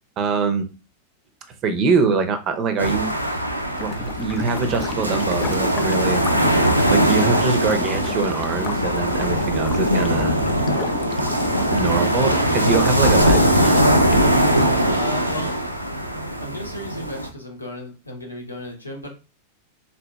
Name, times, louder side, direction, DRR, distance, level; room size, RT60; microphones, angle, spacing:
voice 1, 0.2-0.7 1.6-3.1 3.7-6.2 6.9-10.4 11.7-13.8, right 4 dB, 35° right, 8 dB, 0.6 m, -23 dB
sound 1, 2.8-17.3, right 1 dB, 90° right, 0.4 m, -20 dB
sound 2, 3.8-14.7, left 8 dB, 30° left, 0.3 m, -34 dB
voice 2, 11.9-12.7 14.8-15.5 16.4-19.1, equal, 85° left, 1 dB, 0.8 m, -34 dB
3.9 x 2.7 x 2.3 m, 0.33 s
figure-of-eight pair, 90°, 0 cm